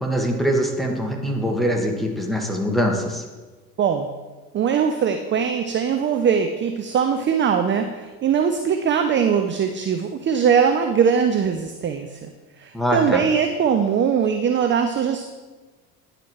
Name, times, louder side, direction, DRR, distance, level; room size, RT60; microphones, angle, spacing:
voice 1, 0.0-3.2 12.7-13.2, equal, ahead, 0 dB, 1.6 m, -23 dB
voice 2, 3.8-4.1 4.5-12.2 12.6-15.2, right 7 dB, 25° right, 6 dB, 0.5 m, -21 dB
10.0 x 4.8 x 4.8 m, 1.3 s
hypercardioid pair, 70°, 45 cm